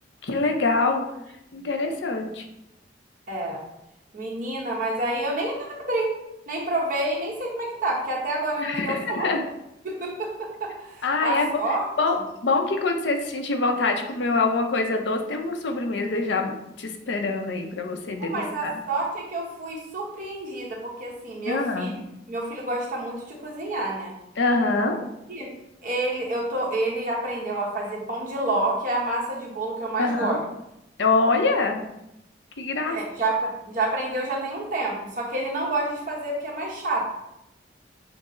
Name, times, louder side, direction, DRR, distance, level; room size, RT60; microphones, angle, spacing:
voice 1, 0.2-1.0 1.5-2.5 8.6-9.4 11.0-11.5 12.0-12.2 12.4-18.8 21.5-21.9 24.4-25.0 30.0-30.4 31.0-31.8 32.6-33.0, left 3 dB, 75° left, 4 dB, 0.6 m, -25 dB
voice 2, 3.3-3.6 4.1-6.1 6.5-9.3 9.8-11.9 18.2-21.9 22.3-24.1 25.3-25.5 25.8-30.4 32.9-37.1, right 2 dB, 45° right, -2 dB, 1.1 m, -28 dB
6.0 x 2.0 x 3.7 m, 0.84 s
head